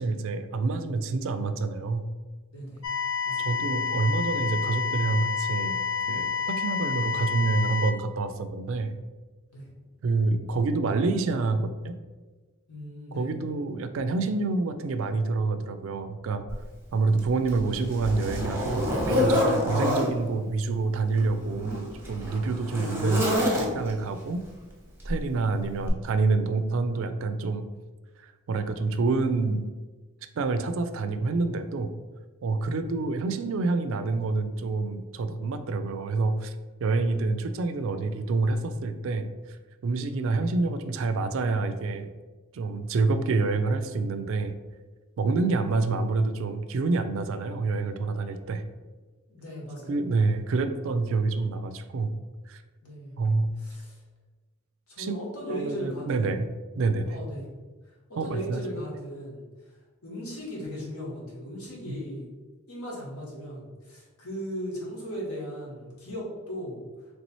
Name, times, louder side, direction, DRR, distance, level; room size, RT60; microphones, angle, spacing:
voice 1, 0.0-2.1 3.4-5.8 6.1-8.9 10.0-11.9 13.1-16.5 16.9-23.4 23.7-24.4 25.0-27.7 28.2-29.7 30.4-31.9 32.4-36.5 36.8-39.6 39.8-42.1 42.5-44.5 45.2-48.6 49.9-52.1 52.5-52.6 53.2-53.5 55.0-55.1 55.5-56.5 56.8-57.1 58.2-58.6 61.9-62.0, right 3 dB, 60° right, 10 dB, 0.3 m, -27 dB
voice 2, 2.5-2.8 3.2-3.5 9.5-9.7 12.7-13.3 32.7-33.0 49.3-50.0 52.8-53.1 53.6-54.0 54.9-56.4 57.0-57.5 57.8-59.4 60.0-62.3 62.7-66.8, equal, 75° left, -5 dB, 1.4 m, -37 dB
sound 1, 2.8-7.9, left 6 dB, 60° left, 0.4 m, -29 dB
Zipper (clothing), 16.5-16.6 17.2-20.1 21.1-24.0 25.0-25.3 25.8-25.9, left 1 dB, 10° right, 0.7 m, -27 dB
3.3 x 3.0 x 4.1 m, 1.3 s
head